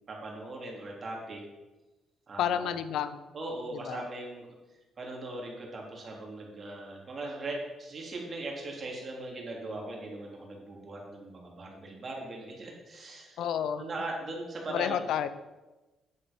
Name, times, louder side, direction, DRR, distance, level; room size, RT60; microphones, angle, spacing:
voice 1, 0.1-1.4 2.3-2.7 3.3-4.5 5.0-13.4 13.8-15.1, right 2 dB, 40° right, -1 dB, 3.3 m, -39 dB
voice 2, 2.4-3.3 3.7-4.0 13.4-13.8 14.7-15.3, left 9 dB, 80° left, 12 dB, 0.7 m, -30 dB
9.8 x 8.0 x 5.3 m, 1.1 s
cardioid pair, 90°, 0 cm